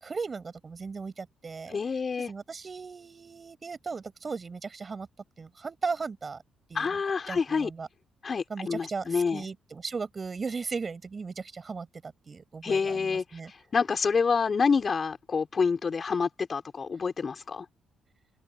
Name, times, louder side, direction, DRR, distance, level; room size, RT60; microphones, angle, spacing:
voice 1, 0.0-1.8 2.3-5.1 5.4-6.4 6.7-6.9 7.3-7.9 8.5-13.5, right 4 dB, 35° right, 7.0 m, -37 dB
voice 2, 1.7-2.3 6.7-7.7 8.2-9.4 12.6-17.6, left 5 dB, 40° left, 4.5 m, -28 dB
open air
cardioid pair, 90°, 0 cm